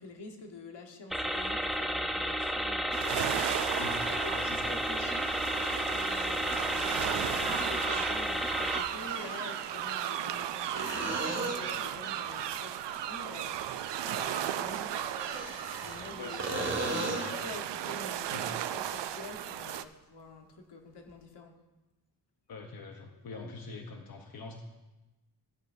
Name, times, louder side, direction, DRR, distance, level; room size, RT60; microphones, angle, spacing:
voice 1, 0.0-3.4 4.0-5.3 5.9-13.6 14.0-15.1 15.8-16.9 17.4-21.6, left 3 dB, 85° left, 3 dB, 1.4 m, -47 dB
sound 1, 1.1-8.8, equal, ahead, 0.7 m, -32 dB
sound 2, 2.9-19.8, right 11 dB, 85° right, 0.5 m, -35 dB
voice 2, 4.3-4.7 16.2-17.3 18.3-18.5 22.5-24.6, left 4 dB, 60° left, 3 dB, 1.0 m, -43 dB
sound 3, 5.4-5.5 7.6-7.7 8.9-9.7 10.8-11.9 15.0-16.1 16.4-17.4 21.1-21.2, right 2 dB, 40° right, 1.8 m, -36 dB
14.5 x 8.4 x 2.7 m, 1.1 s
wide cardioid pair, 115°, 41 cm